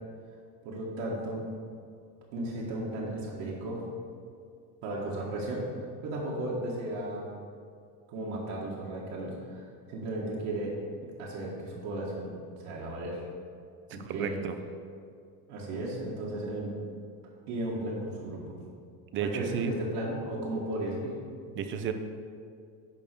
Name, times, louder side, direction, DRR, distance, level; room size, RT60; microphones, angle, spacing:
voice 1, 0.6-1.4 2.3-3.8 4.8-5.6 6.0-7.3 8.1-10.8 11.2-12.3 12.6-13.2 13.9-14.4 15.5-16.7 17.5-18.4 19.2-21.1, right 1 dB, 65° right, -5 dB, 1.8 m, -35 dB
voice 2, 14.0-14.6 19.1-19.7 21.5-21.9, right 8 dB, 30° right, 8 dB, 0.5 m, -33 dB
10.5 x 3.6 x 6.7 m, 2.3 s
cardioid pair, 165°, 41 cm